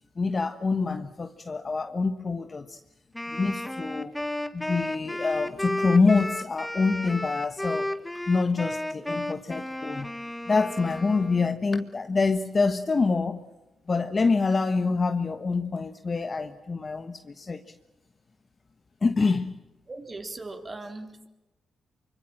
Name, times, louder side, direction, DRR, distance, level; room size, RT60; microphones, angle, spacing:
voice 1, 0.2-2.8 3.3-4.1 4.5-7.9 8.3-10.1 10.5-13.4 13.9-17.6 19.0-19.6, left 4 dB, 35° left, 8 dB, 1.3 m, -26 dB
Wind instrument woodwind instrument, 3.1-11.5, left 1 dB, 10° left, 1.7 m, -33 dB
voice 2, 19.9-21.3, right 2 dB, 30° right, 6 dB, 3.4 m, -39 dB
24.5 x 24.5 x 7.6 m, 1.0 s
cardioid pair, 85°, 0 cm